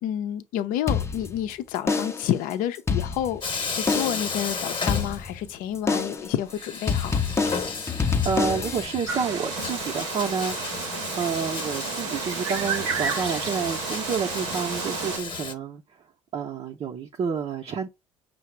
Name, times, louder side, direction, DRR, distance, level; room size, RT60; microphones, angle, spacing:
voice 1, 0.0-3.4 3.7-7.2, left 11 dB, 70° left, 0.6 m, -29 dB
sound 1, 0.9-1.5 1.9-2.4 2.7-3.5 3.9-4.3 4.9-5.5 5.9-6.3 6.9-8.9, left 5 dB, 20° left, 0.6 m, -26 dB
Bathtub (filling or washing), 3.4-5.7 6.0-6.1 6.5-15.5, left 5 dB, 35° left, 1.0 m, -34 dB
voice 2, 8.2-10.7 11.2-15.8 16.3-17.9, right 6 dB, 45° right, 0.7 m, -29 dB
sound 2, 9.1-15.2, right 7 dB, 90° right, 0.7 m, -32 dB
5.7 x 2.0 x 4.5 m
hypercardioid pair, 70°, 15 cm